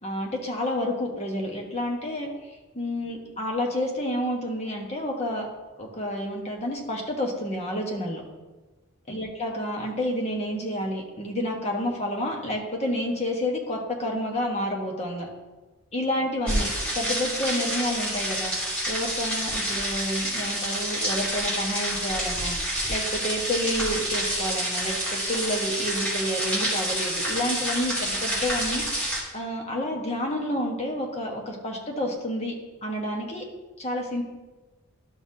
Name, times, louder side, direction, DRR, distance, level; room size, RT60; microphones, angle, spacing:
voice 1, 0.0-2.3 2.7-5.5 5.8-8.2 9.1-15.3 15.9-16.7 16.9-18.5 18.9-22.6 22.9-28.8 29.3-32.5 32.8-33.4 33.8-34.2, left 1 dB, 30° left, 0 dB, 1.3 m, -29 dB
sound 1, 16.5-29.2, equal, 5° left, 2.4 m, -28 dB
12.0 x 5.7 x 2.8 m, 1.2 s
head